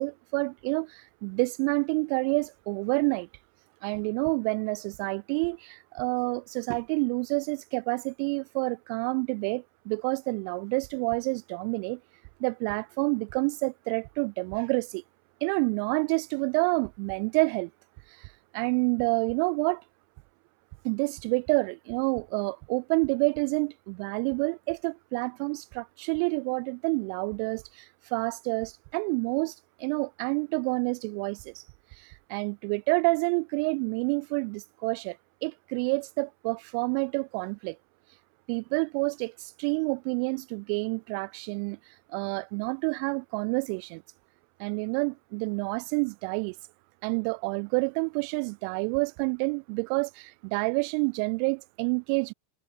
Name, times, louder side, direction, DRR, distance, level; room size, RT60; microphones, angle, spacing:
voice 1, 0.0-3.3 3.8-12.0 12.4-15.0 15.4-17.7 18.2-18.3 18.5-19.8 20.8-27.8 28.1-29.5 29.8-31.6 32.0-35.2 35.4-37.8 38.5-41.8 42.1-44.0 44.6-46.5 47.0-52.3, right 40 dB or more, 45° right, 0.5 m, -28 dB
figure-of-eight pair, 90°, 0 cm